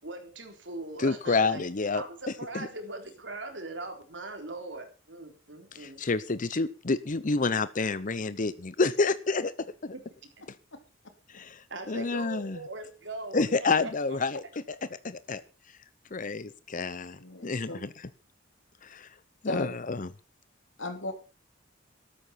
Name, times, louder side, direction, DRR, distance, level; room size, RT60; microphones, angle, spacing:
voice 1, 0.0-1.6 1.9-6.0 9.9-10.0 11.7-14.2, right 2 dB, 70° right, 4.0 m, -40 dB
voice 2, 1.0-2.0 2.5-2.7 5.7-9.5 9.8-9.9 11.3-11.6 11.9-12.6 13.3-14.4 15.0-15.4 16.1-17.9 18.8-19.1 19.4-20.1, left 3 dB, 45° left, 0.7 m, -28 dB
voice 3, 17.2-17.8 19.4-19.7 20.8-21.1, left 2 dB, 90° left, 3.5 m, -36 dB
13.0 x 13.0 x 5.7 m
head